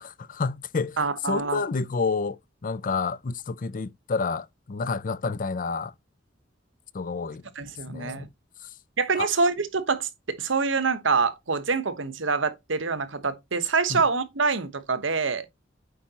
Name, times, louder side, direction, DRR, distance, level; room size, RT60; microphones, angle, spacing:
voice 1, 0.0-1.0 1.2-5.9 6.9-7.4 7.9-8.3 9.2-9.3 13.9-14.0, left 4 dB, 45° left, 0.5 m, -29 dB
voice 2, 1.0-1.6 7.5-8.3 9.0-15.5, right 4 dB, 70° right, 1.1 m, -26 dB
8.5 x 4.9 x 2.9 m
head